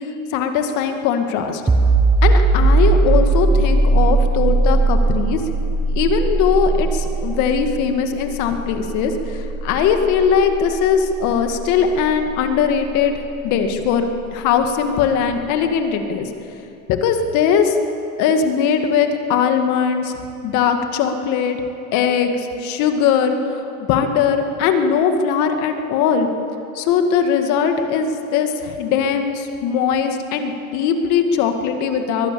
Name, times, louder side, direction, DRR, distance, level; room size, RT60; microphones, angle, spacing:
voice 1, 0.3-1.6 2.2-5.4 5.9-13.1 13.4-16.3 16.9-17.8 18.2-20.1 20.4-21.6 21.9-26.3 26.7-32.3, left 7 dB, 45° left, 6 dB, 2.1 m, -20 dB
sound 1, 1.7-13.1, right 3 dB, 5° right, 0.7 m, -19 dB
23.0 x 18.5 x 7.0 m, 2.8 s
supercardioid pair, 150°, 42 cm